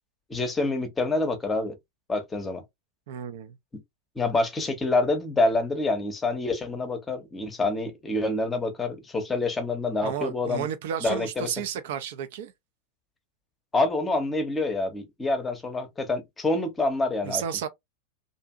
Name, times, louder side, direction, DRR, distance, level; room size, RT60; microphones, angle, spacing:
voice 1, 0.3-1.8 2.1-2.6 4.2-10.7 11.0-11.5 13.7-17.4, left 2 dB, 15° left, 0.7 m, -27 dB
voice 2, 3.1-3.6 10.0-12.5 17.2-17.7, right 9 dB, 55° right, 0.4 m, -32 dB
2.6 x 2.5 x 2.3 m
figure-of-eight pair, 90°, 0 cm